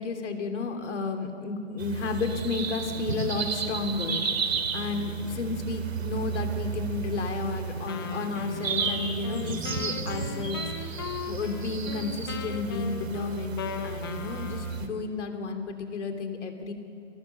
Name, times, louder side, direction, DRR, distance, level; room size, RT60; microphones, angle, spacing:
voice 1, 0.0-11.0 11.3-16.7, left 4 dB, 65° left, 5 dB, 3.1 m, -32 dB
sound 1, 1.8-14.9, right 6 dB, 90° right, 2.8 m, -33 dB
Wind instrument woodwind instrument, 7.9-15.0, left 6 dB, 20° left, 0.5 m, -38 dB
23.5 x 18.5 x 6.9 m, 2.3 s
hypercardioid pair, 160°, 38 cm